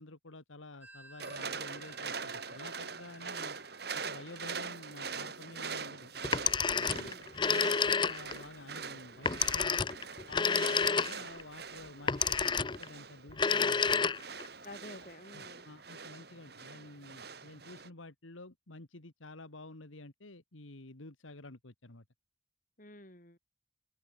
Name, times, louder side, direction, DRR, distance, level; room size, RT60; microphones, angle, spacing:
voice 1, 0.0-3.6 3.9-6.1 6.7-7.1 7.5-9.9 10.3-14.1 14.9-15.0 15.3-22.0, left 2 dB, 90° left, 2.2 m, -50 dB
Telephone, 0.8-6.1, right 2 dB, 10° right, 3.7 m, -58 dB
sound 1, 1.2-17.9, right 5 dB, 55° right, 3.6 m, -43 dB
Telephone 2, 6.2-8.4 9.3-11.4 12.1-12.9 13.3-14.5, left 5 dB, 25° left, 0.5 m, -29 dB
voice 2, 6.6-7.3 14.6-15.7 22.8-23.4, left 1 dB, 40° left, 6.1 m, -50 dB
open air
head